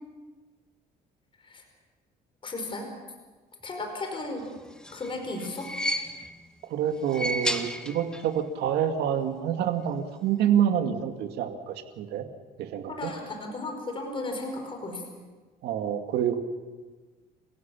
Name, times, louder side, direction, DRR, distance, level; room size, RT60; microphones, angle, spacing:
voice 1, 2.4-2.9 3.6-4.5 4.9-5.7 12.9-15.0, left 2 dB, 30° left, 3 dB, 5.0 m, -35 dB
sound 1, 4.6-6.5 7.0-8.4 8.6-8.7 9.8-9.9, equal, 5° left, 1.5 m, -33 dB
voice 2, 6.7-12.2 12.6-13.1 15.6-16.4, right 9 dB, 80° right, 6 dB, 2.2 m, -27 dB
29.0 x 16.0 x 7.1 m, 1.3 s
cardioid pair, 110°, 17 cm